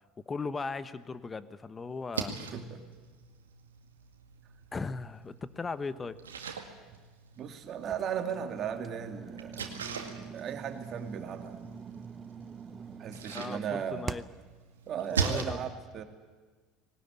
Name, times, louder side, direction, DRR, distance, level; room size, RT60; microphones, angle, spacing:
voice 1, 0.3-2.4 4.7-6.2 13.3-14.2 15.1-15.6, left 4 dB, 25° left, 14 dB, 1.2 m, -37 dB
Splash splatter, 1.9-15.4, right 6 dB, 90° right, 2.0 m, -41 dB
voice 2, 2.3-2.8 7.4-9.7 10.3-11.6 13.0-14.1 14.9-16.0, right 8 dB, 45° right, 6 dB, 2.6 m, -36 dB
sound 1, 7.8-14.5, right 6 dB, 30° right, 0.8 m, -44 dB
20.0 x 18.5 x 9.7 m, 1.4 s
hypercardioid pair, 75°, 0 cm